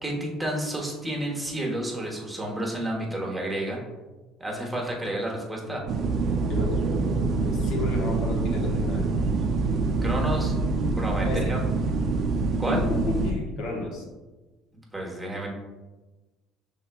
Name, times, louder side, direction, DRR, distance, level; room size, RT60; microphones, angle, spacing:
voice 1, 0.0-3.8 4.4-5.8 10.0-10.5 11.0-11.6 12.6-12.8 14.9-15.5, right 1 dB, 15° right, -1 dB, 1.1 m, -30 dB
voice 2, 5.6-6.7 7.4-9.1 11.2-11.5 12.7-12.8 13.1-14.0, left 2 dB, 70° left, -1 dB, 1.1 m, -33 dB
sound 1, 5.9-13.3, right 3 dB, 55° right, 0.4 m, -25 dB
5.5 x 3.7 x 2.2 m, 1.2 s
supercardioid pair, 90°, 0 cm